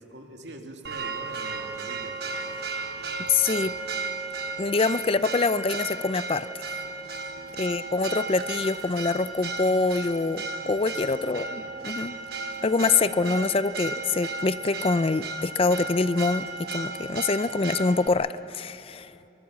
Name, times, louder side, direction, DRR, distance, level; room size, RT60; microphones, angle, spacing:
voice 1, 0.0-2.6 7.2-7.8 10.8-11.3, right 1 dB, 80° right, 3 dB, 2.3 m, -45 dB
Church bell, 0.8-18.1, right 3 dB, 60° right, 1.3 m, -34 dB
voice 2, 3.3-3.7 4.6-6.5 7.6-12.1 12.6-16.5 16.7-19.1, left 3 dB, 30° left, 14 dB, 0.5 m, -25 dB
24.0 x 23.0 x 7.3 m, 3.0 s
head